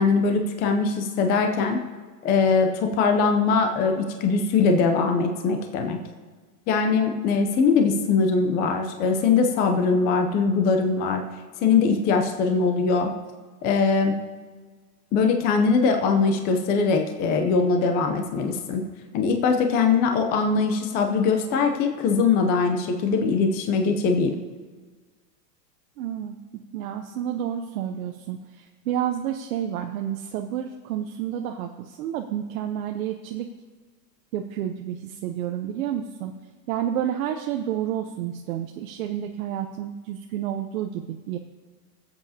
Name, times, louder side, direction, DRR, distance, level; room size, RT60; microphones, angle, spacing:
voice 1, 0.0-1.8 2.2-6.0 6.7-11.2 11.6-13.1 13.6-14.1 15.1-18.8 19.1-24.4, left 4 dB, 20° left, 4 dB, 0.5 m, -21 dB
voice 2, 26.0-26.4 26.7-33.5 34.3-36.3 36.7-41.4, right 10 dB, 60° right, 4 dB, 0.8 m, -30 dB
23.0 x 8.1 x 2.8 m, 1.4 s
supercardioid pair, 145°, 49 cm